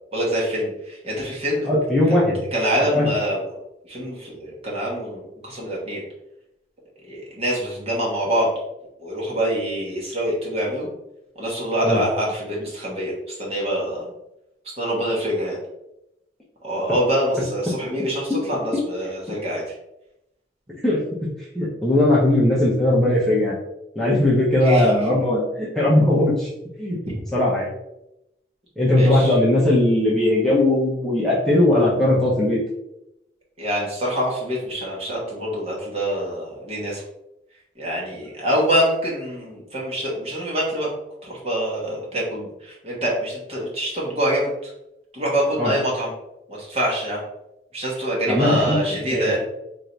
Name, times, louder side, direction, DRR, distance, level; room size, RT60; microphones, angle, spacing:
voice 1, 0.1-1.7 2.5-3.4 3.9-6.0 7.1-8.5 9.0-10.9 11.4-13.1 13.4-14.1 14.8-15.6 16.6-19.6 24.6-24.9 29.0-29.3 33.6-37.0 37.8-40.9 41.2-44.5 45.1-46.1 46.6-47.2 47.7-49.4, equal, 35° right, -4 dB, 1.3 m, -25 dB
voice 2, 1.6-2.4 2.8-3.1 11.8-12.0 20.8-21.0 21.5-23.5 23.9-26.5 26.8-27.0 27.3-27.7 28.8-32.6 45.6-45.7 48.3-48.8 49.1-49.3, left 1 dB, ahead, -8 dB, 0.9 m, -19 dB
3.7 x 2.7 x 4.5 m, 0.87 s
head